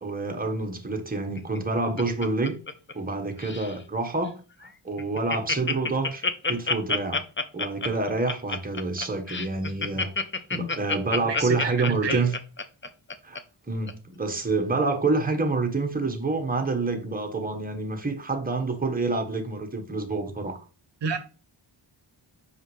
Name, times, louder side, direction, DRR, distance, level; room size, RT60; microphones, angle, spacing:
voice 1, 0.0-2.6 2.9-7.2 7.5-10.1 10.5-12.4 13.2-13.4 13.7-20.6, right 3 dB, 20° right, 1.3 m, -28 dB
Laughter, 1.4-3.1 3.4-3.8 4.2-4.3 4.6-4.7 5.0-13.4 13.9-14.0, left 4 dB, 25° left, 0.6 m, -28 dB
voice 2, 11.2-12.2 21.0-21.2, right 5 dB, 60° right, 0.8 m, -30 dB
5.5 x 5.3 x 3.2 m
wide cardioid pair, 100°, 47 cm